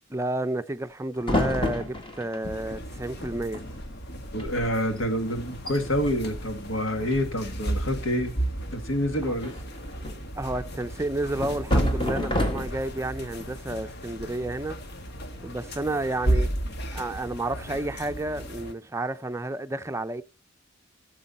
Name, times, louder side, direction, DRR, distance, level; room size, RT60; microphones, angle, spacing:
voice 1, 0.1-3.6 9.2-9.3 10.4-14.8 15.4-16.5 16.9-20.2, right 2 dB, 15° right, 0.6 m, -31 dB
sound 1, 1.2-2.4 3.3-3.4 3.5-3.9 4.3-4.4 5.0-5.1 5.5-5.8 6.9-7.4 9.4-10.4 11.4-13.0, left 1 dB, 25° left, 2.1 m, -29 dB
sound 2, 2.4-18.7, right 1 dB, 55° left, 1.4 m, -33 dB
voice 2, 4.3-8.4 8.7-9.5, equal, 75° left, 2.1 m, -27 dB
16.0 x 7.6 x 4.3 m
head